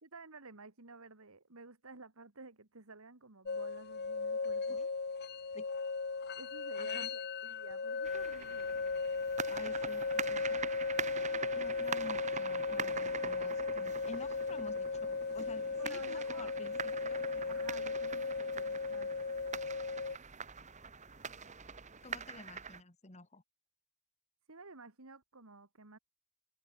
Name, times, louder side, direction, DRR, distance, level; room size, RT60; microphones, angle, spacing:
voice 1, 0.0-4.9 6.4-8.8 15.8-16.5 17.5-19.1 24.5-26.0, right 3 dB, 80° right, 2.3 m, -53 dB
sound 1, 3.5-20.2, left 4 dB, 50° left, 1.0 m, -37 dB
voice 2, 6.8-7.1 9.5-10.6 11.5-16.8 17.0-17.7 22.0-23.4, left 2 dB, 30° left, 2.4 m, -51 dB
sound 2, 8.0-22.8, right 6 dB, 35° right, 1.8 m, -44 dB
head